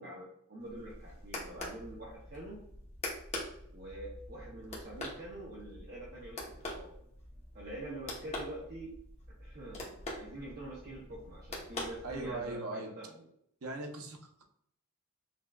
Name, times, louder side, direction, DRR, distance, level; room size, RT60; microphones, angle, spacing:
voice 1, 0.0-2.6 3.7-6.9 7.5-9.0 9.4-13.3, right 1 dB, 45° right, -5 dB, 0.7 m, -46 dB
sound 1, 0.6-12.6, left 1 dB, 30° left, 0.7 m, -44 dB
voice 2, 12.0-12.9 13.6-14.4, right 2 dB, 80° right, 3 dB, 0.6 m, -39 dB
5.8 x 2.2 x 2.2 m, 0.69 s
head